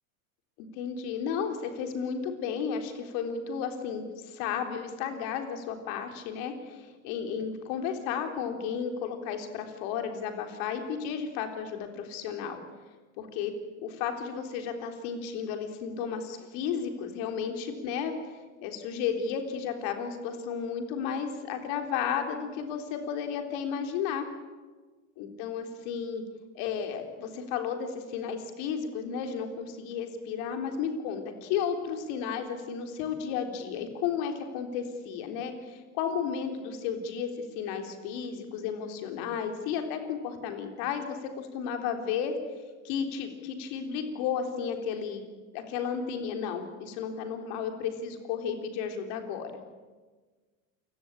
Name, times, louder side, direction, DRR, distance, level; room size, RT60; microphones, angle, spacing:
voice 1, 0.6-12.6 13.2-13.5 13.8-18.1 18.6-24.3 25.2-26.2 26.6-37.3 37.6-42.3 42.8-45.3 45.5-49.5, left 7 dB, 60° left, 6 dB, 3.7 m, -33 dB
28.5 x 17.0 x 9.0 m, 1.4 s
supercardioid pair, 130°, 39 cm